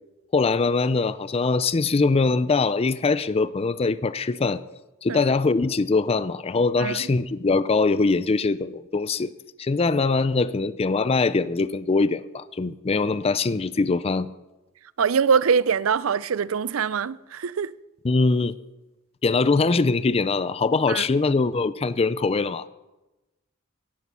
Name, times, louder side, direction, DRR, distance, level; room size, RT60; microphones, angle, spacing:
voice 1, 0.3-4.6 5.0-9.3 9.6-14.3 18.0-18.5 19.2-22.7, left 3 dB, 30° left, 0.4 m, -22 dB
voice 2, 15.0-17.7 20.9-21.0, right 6 dB, 80° right, 0.5 m, -23 dB
15.5 x 11.0 x 6.1 m
head